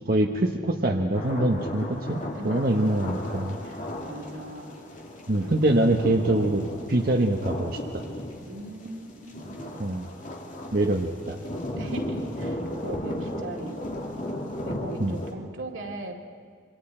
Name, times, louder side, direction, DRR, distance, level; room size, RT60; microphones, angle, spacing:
voice 1, 0.0-3.6 5.3-8.0 9.8-10.1 10.7-11.4 15.0-15.1, right 1 dB, 50° right, 2 dB, 1.0 m, -24 dB
sound 1, 1.1-15.3, left 1 dB, 40° left, 2.4 m, -35 dB
voice 2, 2.3-2.9 3.6-4.8 5.4-5.5 7.0-7.1 8.5-9.8 11.7-13.8 14.6-16.1, right 2 dB, 90° right, 1 dB, 2.5 m, -39 dB
26.5 x 24.0 x 4.4 m, 2.2 s
head